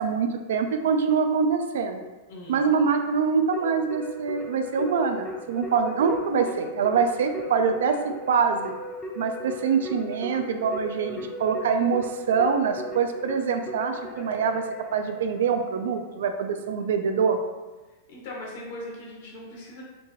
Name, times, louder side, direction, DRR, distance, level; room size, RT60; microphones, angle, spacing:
voice 1, 0.0-2.0 2.5-8.0 8.3-8.7 9.2-14.6 14.9-17.4, right 6 dB, 80° right, 7 dB, 0.4 m, -24 dB
voice 2, 2.3-2.6 18.1-19.8, left 1 dB, 65° left, -3 dB, 1.4 m, -39 dB
Keyboard (musical), 3.5-16.0, left 1 dB, 15° left, 0.6 m, -37 dB
4.3 x 2.7 x 2.9 m, 1.2 s
supercardioid pair, 135°, 0 cm